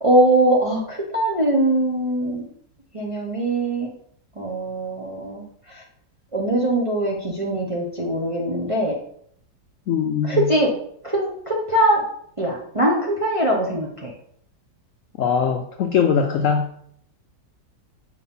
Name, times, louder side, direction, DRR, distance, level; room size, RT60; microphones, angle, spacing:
voice 1, 0.0-2.4 2.9-3.9 4.4-5.4 6.3-8.9 10.2-10.7 11.0-12.0 12.4-14.1, right 1 dB, 30° right, -2 dB, 0.6 m, -21 dB
voice 2, 9.9-10.5 15.2-16.7, left 6 dB, 75° left, 6 dB, 0.7 m, -21 dB
4.9 x 4.1 x 5.4 m, 0.67 s
omnidirectional pair, 1.8 m